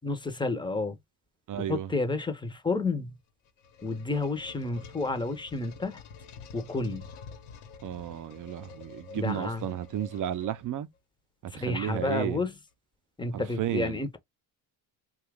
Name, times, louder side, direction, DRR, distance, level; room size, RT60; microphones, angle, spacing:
voice 1, 0.0-1.0 1.6-3.1 3.8-6.0 6.5-7.1 9.2-9.7 11.5-12.6 13.2-14.2, left 3 dB, 10° left, 0.7 m, -31 dB
voice 2, 1.5-1.9 7.8-10.9 11.4-12.4 13.3-14.0, right 11 dB, 40° right, 0.6 m, -33 dB
sound 1, 3.2-11.0, left 5 dB, 80° left, 1.1 m, -48 dB
2.8 x 2.4 x 3.4 m
supercardioid pair, 85°, 48 cm